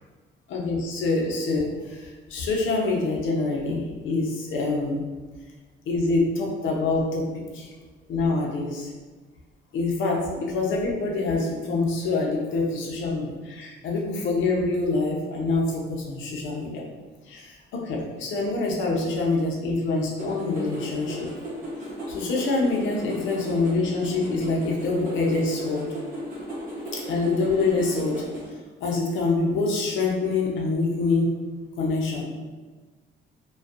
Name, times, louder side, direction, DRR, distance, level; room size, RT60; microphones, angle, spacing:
voice 1, 0.5-5.0 5.9-7.2 7.5-7.7 8.1-8.9 9.7-16.9 17.3-21.3 22.1-25.9 26.9-28.2 28.8-31.3 31.8-32.2, left 3 dB, 75° left, -1 dB, 0.6 m, -25 dB
sound 1, 20.2-28.5, equal, 45° right, 0.9 m, -36 dB
2.5 x 2.2 x 2.4 m, 1.3 s
cardioid pair, 90°, 20 cm